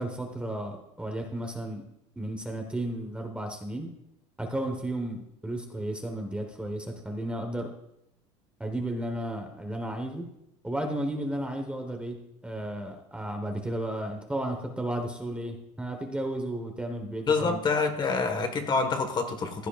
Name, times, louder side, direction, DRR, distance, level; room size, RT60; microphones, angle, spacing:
voice 1, 0.0-1.8 2.2-3.9 4.4-7.7 8.6-10.3 10.6-12.2 12.4-17.6 18.2-18.5, right 1 dB, 5° right, 3 dB, 1.3 m, -33 dB
voice 2, 17.3-19.7, left 4 dB, 30° left, 6 dB, 1.6 m, -27 dB
15.0 x 9.9 x 2.5 m, 0.84 s
supercardioid pair, 120°, 15 cm